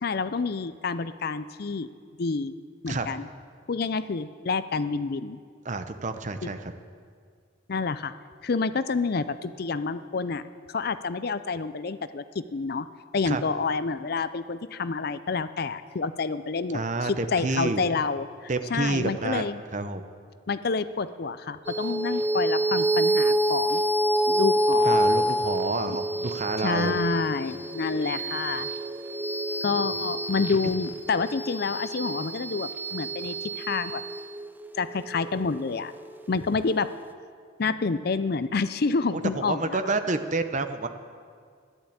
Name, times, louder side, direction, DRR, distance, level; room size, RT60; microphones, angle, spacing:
voice 1, 0.0-1.9 2.2-2.5 2.8-3.3 3.7-5.4 6.4-6.5 7.7-8.1 8.4-10.4 10.7-12.9 13.1-19.6 20.5-23.8 24.3-25.0 25.9-26.0 26.6-28.7 29.6-34.0 34.8-35.9 36.3-36.9 37.6-39.9, left 4 dB, 50° left, 13 dB, 0.5 m, -28 dB
voice 2, 5.6-6.7 13.3-13.4 16.7-17.8 18.5-19.4 19.7-20.0 24.8-27.0 30.6-30.7 39.1-39.2 39.5-40.9, right 3 dB, 35° right, 9 dB, 0.8 m, -29 dB
sound 1, 21.7-36.4, right 1 dB, 10° right, 0.5 m, -27 dB
13.5 x 11.5 x 8.7 m, 2.1 s
head